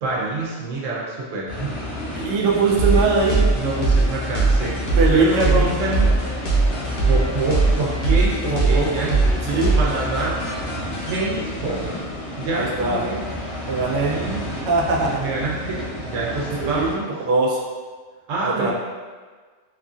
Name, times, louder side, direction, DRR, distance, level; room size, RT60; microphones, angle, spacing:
voice 1, 0.0-1.8 3.5-4.7 5.1-6.2 7.1-10.5 11.0-11.9 12.4-13.2 14.1-14.5 15.2-17.1 18.3-18.7, right 3 dB, 85° right, -4 dB, 1.0 m, -26 dB
sound 1, 1.5-17.0, equal, 30° left, 0.8 m, -32 dB
voice 2, 2.2-3.5 5.0-5.7 8.5-8.9 9.4-9.7 12.5-13.1 13.7-14.1 14.6-15.1 16.6-16.9 17.3-17.6 18.4-18.7, right 3 dB, 60° right, -3 dB, 0.6 m, -21 dB
sound 2, 2.8-11.2, right 3 dB, 75° left, 1.0 m, -21 dB
3.0 x 2.4 x 2.4 m, 1.5 s
omnidirectional pair, 1.3 m